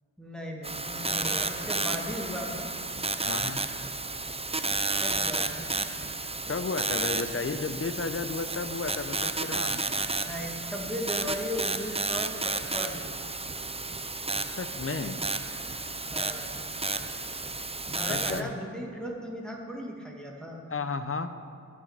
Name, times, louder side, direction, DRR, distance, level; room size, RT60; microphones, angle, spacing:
voice 1, 0.2-2.7 5.0-5.6 10.3-13.0 16.1-16.5 17.9-20.6, equal, ahead, -1 dB, 1.8 m, -36 dB
sound 1, 0.6-18.4, right 3 dB, 20° right, 0.5 m, -32 dB
voice 2, 3.2-3.6 6.5-9.9 14.6-15.2 18.1-18.5 20.7-21.3, left 4 dB, 45° left, 10 dB, 0.7 m, -33 dB
12.0 x 6.3 x 7.2 m, 2.4 s
wide cardioid pair, 70°, 32 cm